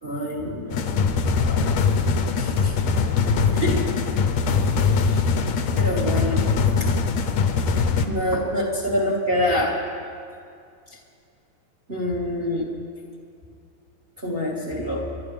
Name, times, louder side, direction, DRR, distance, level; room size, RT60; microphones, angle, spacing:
voice 1, 0.0-1.7 2.4-2.7 3.5-3.8 5.7-6.5 6.8-6.9 8.0-9.8 11.9-12.7 14.2-15.1, left 1 dB, 30° right, -3 dB, 1.1 m, -26 dB
sound 1, 0.7-8.1, left 5 dB, 70° left, 1.8 m, -22 dB
29.5 x 12.0 x 3.4 m, 2.3 s
omnidirectional pair, 3.9 m